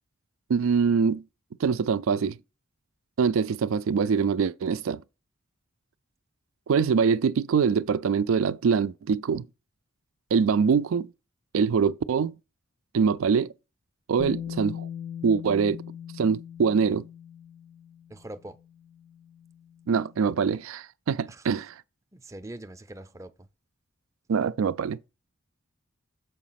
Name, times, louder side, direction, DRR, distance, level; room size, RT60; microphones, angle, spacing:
voice 1, 0.5-1.2 1.6-2.4 3.2-5.0 6.7-9.5 10.3-11.1 11.5-12.3 12.9-13.5 14.1-14.9 15.2-15.8 16.2-17.1 19.9-21.7 24.3-25.0, right 6 dB, 70° right, 0.4 m, -24 dB
Bass guitar, 14.2-20.2, left 9 dB, 35° left, 0.5 m, -40 dB
voice 2, 18.1-18.6 21.3-21.5 22.1-23.5, right 1 dB, 15° right, 0.5 m, -42 dB
6.9 x 5.0 x 5.7 m
head